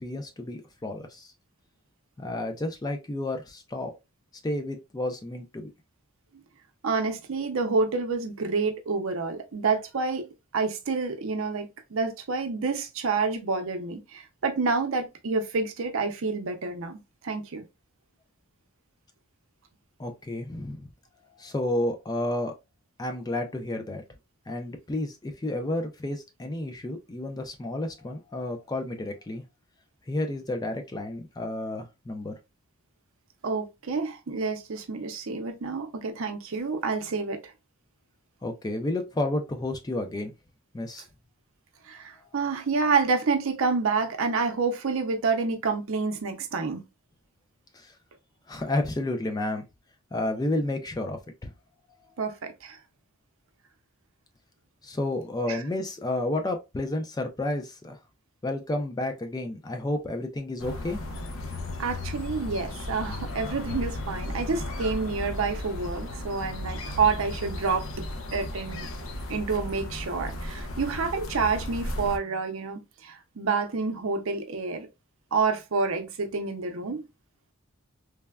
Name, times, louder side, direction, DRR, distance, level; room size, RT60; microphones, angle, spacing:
voice 1, 0.0-1.3 2.2-3.9 4.4-5.7 20.0-20.8 21.4-22.5 23.0-24.0 24.5-29.4 30.1-32.3 38.4-40.3 40.7-41.0 47.7-47.9 48.5-49.6 50.1-51.5 54.8-58.0 58.4-61.0, left 1 dB, 20° left, 0.3 m, -31 dB
voice 2, 6.8-10.3 10.5-17.6 33.4-37.5 41.8-46.8 52.2-52.8 55.5-55.6 61.8-68.9 69.3-74.9 75.3-77.0, right 4 dB, 70° right, 0.6 m, -28 dB
sound 1, 60.6-72.2, left 1 dB, 70° left, 0.5 m, -35 dB
3.2 x 2.1 x 2.2 m
head